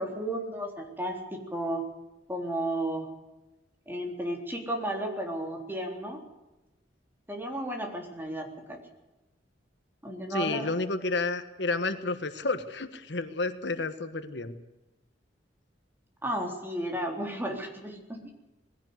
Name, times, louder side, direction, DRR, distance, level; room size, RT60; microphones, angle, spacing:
voice 1, 0.0-1.8 2.3-3.1 3.9-6.2 7.3-8.8 10.0-10.7 16.2-18.2, right 1 dB, 10° right, 2 dB, 3.7 m, -33 dB
voice 2, 10.3-14.6, left 3 dB, 65° left, 10 dB, 1.4 m, -31 dB
21.0 x 16.0 x 8.1 m, 1.0 s
head